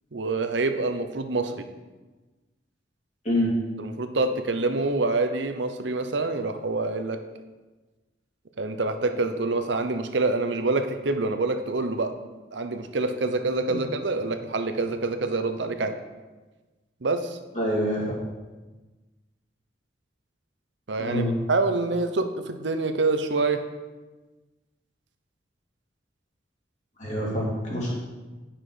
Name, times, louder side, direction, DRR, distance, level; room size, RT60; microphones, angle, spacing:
voice 1, 0.1-1.7 3.8-7.2 8.6-12.1 12.5-15.9 17.0-17.4 20.9-21.2 21.5-23.6, right 3 dB, 75° right, 8 dB, 0.8 m, -26 dB
voice 2, 17.5-18.1 21.0-21.3 27.0-27.9, equal, 40° left, -4 dB, 2.5 m, -26 dB
10.0 x 5.9 x 4.9 m, 1.2 s
head